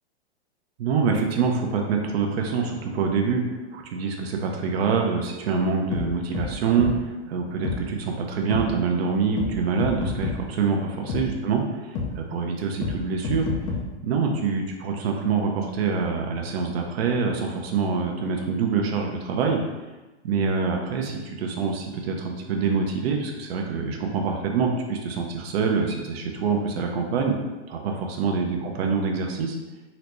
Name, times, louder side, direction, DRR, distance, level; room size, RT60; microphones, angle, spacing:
voice 1, 0.8-3.4 3.7-11.6 12.2-13.5 14.0-19.6 20.2-27.3 27.7-29.5, right 5 dB, 60° right, 2 dB, 0.6 m, -25 dB
sound 1, 5.9-6.1 6.3-6.5 6.8-6.9 7.6-7.8 8.5-8.6 9.4-9.5 9.8-10.4 11.1-11.2 12.0-12.1 12.8-12.9 13.2-13.8, left 5 dB, 20° left, 0.4 m, -27 dB
3.9 x 2.1 x 2.9 m, 1.1 s
hypercardioid pair, 130°, 34 cm